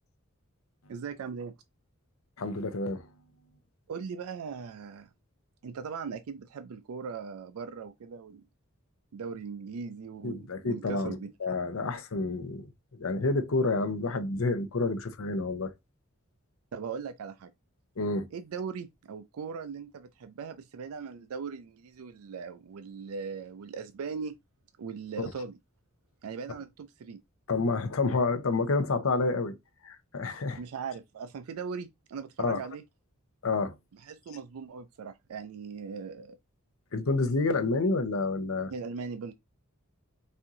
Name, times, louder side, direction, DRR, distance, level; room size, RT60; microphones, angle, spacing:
voice 1, 0.9-1.5 3.9-5.1 5.6-8.4 9.1-11.3 16.7-17.5 18.3-24.3 24.8-25.6 26.2-27.2 30.6-32.8 33.9-36.4 38.7-39.3, right 5 dB, 85° right, 0.4 m, -39 dB
voice 2, 2.4-3.0 10.2-11.2 11.4-12.7 13.0-15.7 18.0-18.3 25.2-25.3 27.5-29.6 29.8-30.6 32.4-32.6 33.4-33.7 36.9-38.7, left 3 dB, 70° left, 0.7 m, -29 dB
4.2 x 2.7 x 3.6 m
head